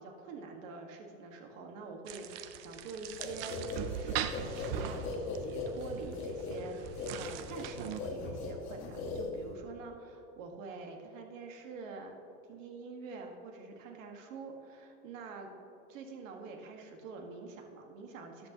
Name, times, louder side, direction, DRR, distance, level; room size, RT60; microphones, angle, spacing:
voice 1, 0.0-12.1 12.5-15.5 15.9-18.5, right 4 dB, 70° right, 3 dB, 1.8 m, -46 dB
sound 1, 2.1-8.0, right 10 dB, 45° right, 0.6 m, -40 dB
sound 2, 3.2-9.7, left 3 dB, 30° left, 1.9 m, -39 dB
14.0 x 11.0 x 2.9 m, 2.9 s
supercardioid pair, 160°, 41 cm